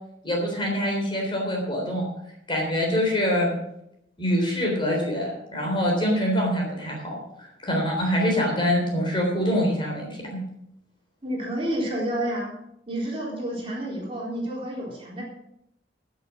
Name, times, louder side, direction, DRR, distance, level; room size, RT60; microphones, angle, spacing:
voice 1, 0.2-2.1 2.5-3.5 4.2-10.4, equal, 25° left, -1 dB, 3.6 m, -25 dB
voice 2, 11.2-12.5 12.9-15.2, right 1 dB, 30° right, -3 dB, 3.9 m, -29 dB
15.0 x 7.0 x 6.2 m, 0.79 s
head